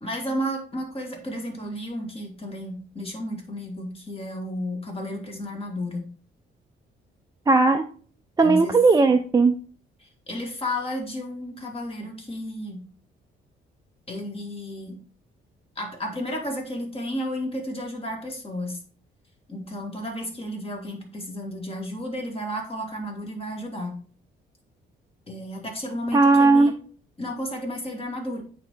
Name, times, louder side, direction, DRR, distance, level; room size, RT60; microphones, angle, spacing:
voice 1, 0.0-6.1 8.4-8.8 10.0-12.8 14.1-15.0 15.8-18.8 19.5-24.0 25.3-26.7 27.2-28.4, left 1 dB, 30° left, 2 dB, 2.0 m, -32 dB
voice 2, 7.5-7.9 8.4-9.5 26.1-26.7, right 3 dB, 20° right, 5 dB, 0.4 m, -17 dB
8.5 x 3.4 x 3.7 m, 0.43 s
cardioid pair, 90°, 20 cm